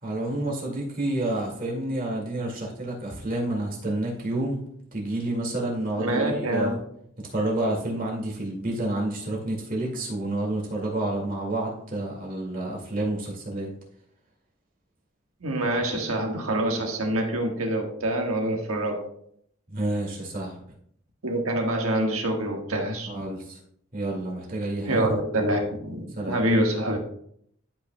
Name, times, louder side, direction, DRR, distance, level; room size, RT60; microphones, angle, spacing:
voice 1, 0.0-4.6 4.9-6.8 7.3-13.7 19.7-20.6 23.1-23.6 23.9-25.1 26.2-26.4, right 1 dB, 40° right, -2 dB, 2.2 m, -29 dB
voice 2, 6.0-6.8 15.4-19.0 21.2-23.1 24.8-27.0, right 1 dB, 90° right, 1 dB, 1.6 m, -26 dB
11.5 x 5.6 x 2.3 m, 0.68 s
head